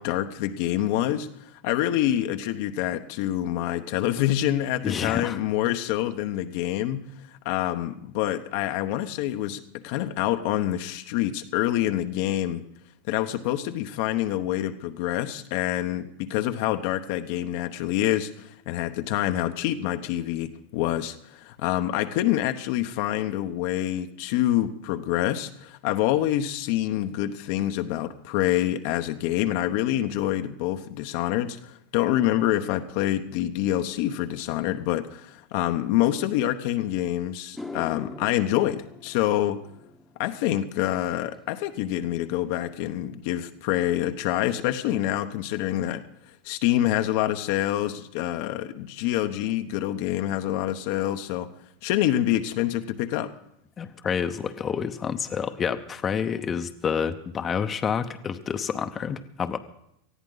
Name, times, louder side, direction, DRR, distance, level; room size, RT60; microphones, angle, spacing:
voice 1, 0.0-7.0 7.3-12.6 13.1-39.6 40.2-46.0 46.4-51.5 51.8-53.3, left 13 dB, 65° left, 7 dB, 0.9 m, -26 dB
voice 2, 4.8-5.4 53.8-59.6, left 7 dB, 30° left, 8 dB, 0.9 m, -28 dB
sound 1, 37.4-45.9 46.2-46.6 50.2-50.3 51.9-52.0 52.3-52.5 52.7-53.3, left 2 dB, 5° left, 1.1 m, -47 dB
19.5 x 14.0 x 4.0 m, 0.76 s
hypercardioid pair, 105°, 0 cm